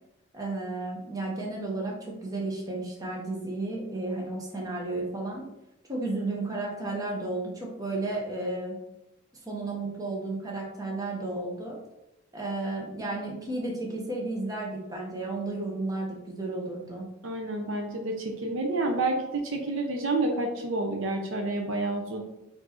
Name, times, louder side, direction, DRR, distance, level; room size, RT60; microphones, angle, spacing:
voice 1, 0.3-5.4 5.9-8.8 9.5-11.8 12.3-17.0, right 2 dB, 20° right, -2 dB, 1.0 m, -33 dB
voice 2, 17.2-22.2, right 2 dB, 65° right, 2 dB, 0.7 m, -29 dB
4.4 x 2.8 x 4.3 m, 0.90 s
head